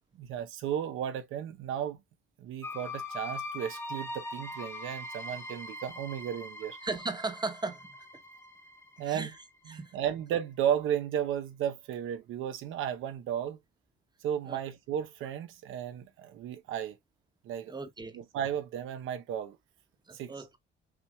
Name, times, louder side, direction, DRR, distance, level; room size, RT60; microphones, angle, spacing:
voice 1, 0.2-2.0 2.4-6.8 9.0-9.3 9.7-13.6 14.2-17.0 17.4-17.7 18.1-19.6 20.1-20.3, right 9 dB, 90° right, 0.9 m, -34 dB
sound 1, 2.6-10.2, left 1 dB, 15° left, 1.2 m, -42 dB
voice 2, 6.8-8.1 9.0-9.3 9.7-10.0 14.5-14.6 17.7-18.2 20.1-20.5, right 3 dB, 20° right, 1.0 m, -37 dB
6.1 x 3.2 x 2.3 m
cardioid pair, 90°, 20 cm